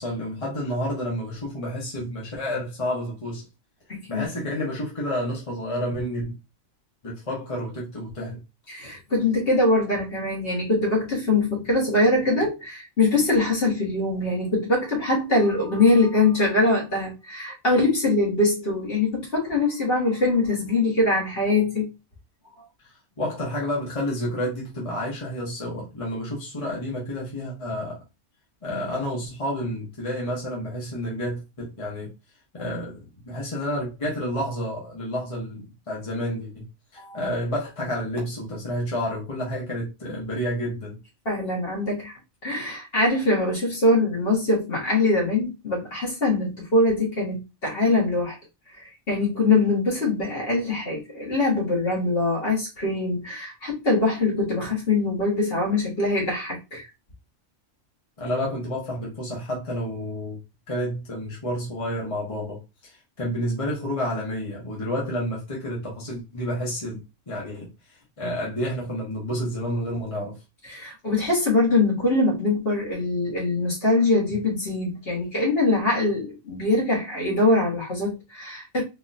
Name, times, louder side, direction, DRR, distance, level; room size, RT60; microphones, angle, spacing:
voice 1, 0.0-3.5 4.1-6.4 7.0-8.4 22.8-28.0 28.6-32.1 32.5-36.6 36.9-41.0 58.2-60.4 60.7-67.7 68.2-70.3 74.3-74.4, equal, 30° left, 1.2 m, -30 dB
voice 2, 3.9-4.2 8.7-21.9 37.0-37.2 41.3-42.1 42.4-48.4 48.8-56.9 70.7-78.8, left 2 dB, 50° left, 1.9 m, -23 dB
4.0 x 2.9 x 2.6 m
omnidirectional pair, 1.3 m